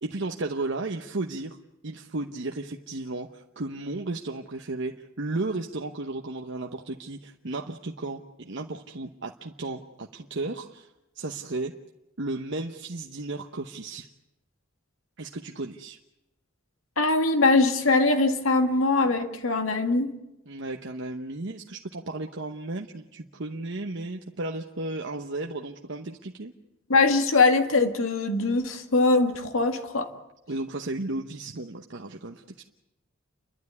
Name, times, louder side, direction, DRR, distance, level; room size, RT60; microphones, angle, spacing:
voice 1, 0.0-1.6 1.8-10.9 11.1-11.7 12.2-14.1 15.2-16.0 20.5-26.5 30.5-32.4, right 2 dB, 60° right, 3 dB, 1.0 m, -34 dB
voice 2, 17.0-20.1 26.9-30.1, left 3 dB, 85° left, 6 dB, 2.0 m, -22 dB
30.0 x 12.0 x 9.6 m, 0.92 s
head